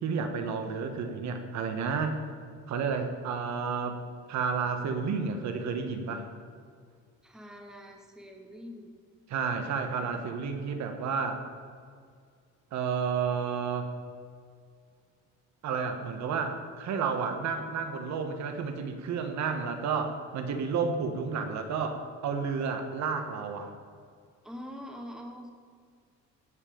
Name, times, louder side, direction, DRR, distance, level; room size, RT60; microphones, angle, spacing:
voice 1, 0.0-2.2 2.7-4.0 4.3-6.3 9.3-11.4 12.7-13.9 15.6-23.7, right 5 dB, 65° right, 6 dB, 1.5 m, -31 dB
voice 2, 7.2-8.9 24.4-25.5, equal, ahead, 3 dB, 1.2 m, -44 dB
16.5 x 5.7 x 7.1 m, 2.1 s
cardioid pair, 140°, 30 cm